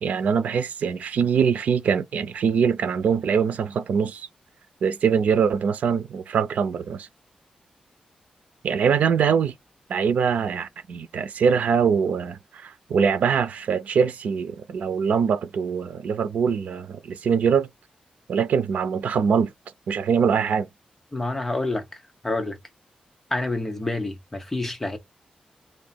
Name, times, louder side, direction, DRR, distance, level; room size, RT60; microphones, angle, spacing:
voice 1, 0.0-4.3 4.8-7.1 8.6-9.5 9.9-17.7 18.3-19.5 19.9-20.7, right 6 dB, 90° right, 0.6 m, -23 dB
voice 2, 21.1-22.6 23.3-25.0, left 2 dB, 10° left, 1.0 m, -28 dB
3.3 x 2.7 x 4.1 m
wide cardioid pair, 150°, 2 cm